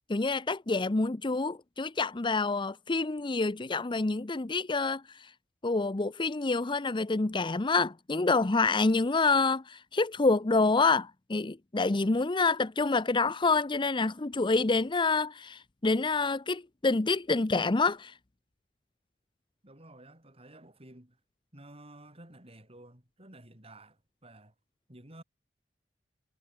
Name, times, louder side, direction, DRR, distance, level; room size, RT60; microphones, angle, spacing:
voice 1, 0.1-5.3 5.6-18.1, left 3 dB, 25° left, 0.7 m, -27 dB
voice 2, 19.6-21.2 21.5-24.5 24.9-25.2, right 1 dB, 35° right, 6.3 m, -52 dB
head